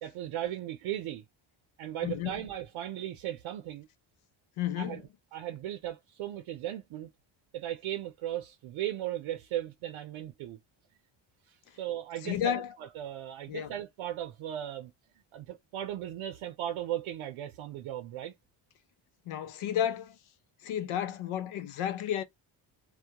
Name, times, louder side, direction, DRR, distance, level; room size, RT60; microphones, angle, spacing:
voice 1, 0.0-1.2 1.8-3.9 4.8-5.0 5.3-7.1 7.5-10.6 11.5-14.9 15.3-18.3, right 12 dB, 75° right, 0.6 m, -37 dB
voice 2, 4.6-5.0 12.2-12.7 13.5-13.7 19.3-20.2 20.6-22.2, left 10 dB, 75° left, 0.6 m, -32 dB
2.2 x 2.1 x 2.8 m
cardioid pair, 80°, 49 cm